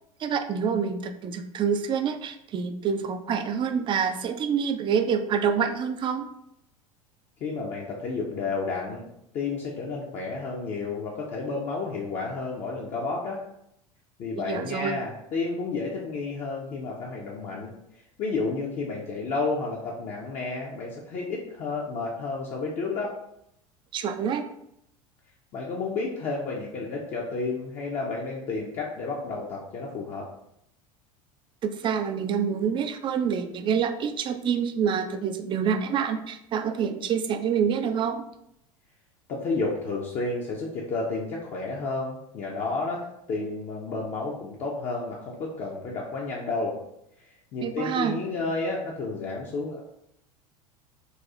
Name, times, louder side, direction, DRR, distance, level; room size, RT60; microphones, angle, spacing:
voice 1, 0.2-6.2 14.4-15.0 23.9-24.4 31.6-38.2 47.6-48.2, right 7 dB, 25° right, 8 dB, 0.3 m, -27 dB
voice 2, 7.4-9.0 9.3-13.4 14.2-17.7 18.2-23.1 25.5-30.3 39.3-46.8 47.2-49.8, left 3 dB, 35° left, -3 dB, 0.6 m, -31 dB
4.1 x 2.3 x 2.4 m, 0.79 s
figure-of-eight pair, 75°, 19 cm